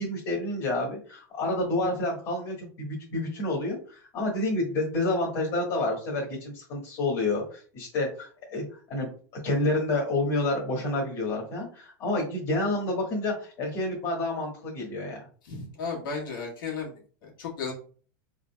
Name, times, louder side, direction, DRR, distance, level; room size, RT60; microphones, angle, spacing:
voice 1, 0.0-9.1 9.4-15.3, left 2 dB, 40° left, -3 dB, 1.4 m, -29 dB
voice 2, 15.4-16.9 17.2-17.7, left 5 dB, 80° left, -2 dB, 1.7 m, -34 dB
5.1 x 3.7 x 2.2 m, 0.42 s
supercardioid pair, 165°, 11 cm